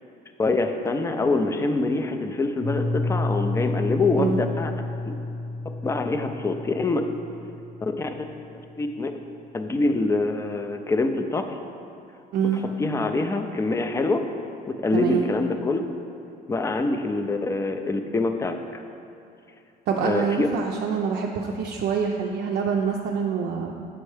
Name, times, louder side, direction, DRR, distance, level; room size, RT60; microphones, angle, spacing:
voice 1, 0.4-4.7 5.0-5.1 5.7-7.1 7.8-8.1 8.8-9.1 9.5-11.6 12.8-14.3 14.7-15.8 16.5-18.8 20.0-20.5, left 3 dB, 15° left, 6 dB, 0.3 m, -25 dB
Piano, 2.6-8.2, left 2 dB, 50° left, 0.8 m, -30 dB
voice 2, 12.3-12.6 14.9-15.3 19.9-23.7, right 6 dB, 70° right, 0 dB, 0.4 m, -25 dB
7.1 x 4.3 x 3.3 m, 2.6 s
cardioid pair, 110°, 17 cm